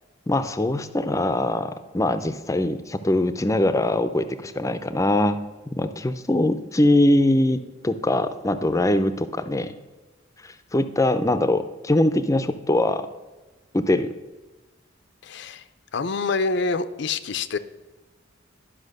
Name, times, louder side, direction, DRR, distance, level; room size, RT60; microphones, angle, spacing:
voice 1, 0.3-5.4 5.7-9.7 10.4-13.1 13.7-14.1, left 1 dB, 15° left, 11 dB, 0.5 m, -22 dB
voice 2, 15.2-15.6 15.9-17.6, left 4 dB, 65° left, 12 dB, 0.6 m, -26 dB
12.0 x 5.7 x 6.6 m, 1.2 s
head